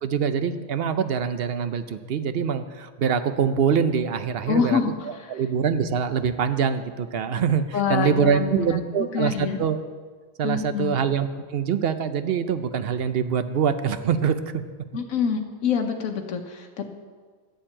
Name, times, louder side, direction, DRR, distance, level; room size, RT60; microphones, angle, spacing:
voice 1, 0.0-4.8 5.3-9.8 10.4-14.6, right 7 dB, 55° right, 10 dB, 0.8 m, -24 dB
voice 2, 4.5-5.4 7.7-9.6 10.4-11.0 14.9-16.9, left 6 dB, 85° left, 3 dB, 1.3 m, -26 dB
11.5 x 7.2 x 8.7 m, 1.5 s
omnidirectional pair, 1.4 m